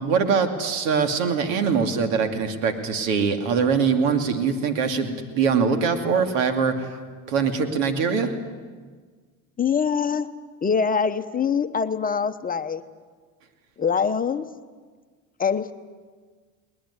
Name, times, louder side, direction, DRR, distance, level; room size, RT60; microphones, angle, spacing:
voice 1, 0.0-6.9 7.3-8.3, right 5 dB, 80° right, 6 dB, 2.6 m, -23 dB
voice 2, 9.6-10.3 10.6-12.8 13.8-14.4 15.4-15.7, left 6 dB, 20° left, 9 dB, 1.0 m, -23 dB
21.5 x 19.5 x 9.7 m, 1.5 s
supercardioid pair, 105°, 39 cm